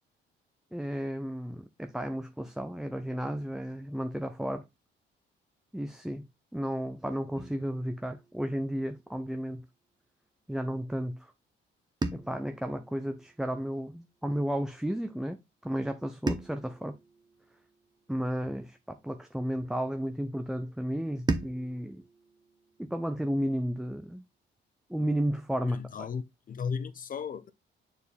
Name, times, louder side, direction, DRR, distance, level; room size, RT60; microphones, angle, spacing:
voice 1, 0.7-4.6 5.7-6.3 6.5-9.6 10.5-11.3 12.1-15.4 15.6-17.0 18.1-22.0 22.8-24.2 24.9-25.8, equal, 5° right, 0.7 m, -33 dB
sound 1, 7.4-9.6 12.0-14.3 16.3-18.7 21.3-23.8, right 3 dB, 20° right, 1.0 m, -39 dB
voice 2, 25.6-27.5, left 6 dB, 45° left, 0.8 m, -35 dB
6.9 x 4.5 x 3.4 m
cardioid pair, 90°, 20 cm